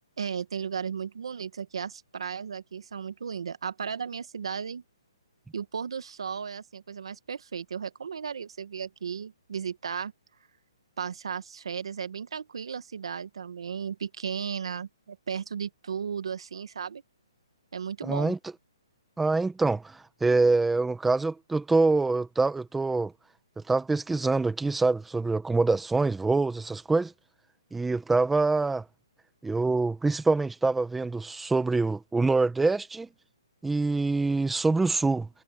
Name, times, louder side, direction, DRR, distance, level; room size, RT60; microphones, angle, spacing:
voice 1, 0.2-4.8 5.5-10.1 11.0-17.0 17.7-18.3, right 7 dB, 70° right, 1.6 m, -35 dB
voice 2, 18.0-18.4 19.2-23.1 23.6-27.1 27.7-28.8 29.4-33.1 33.6-35.3, right 3 dB, 5° right, 1.0 m, -25 dB
hypercardioid pair, 165°, 3 cm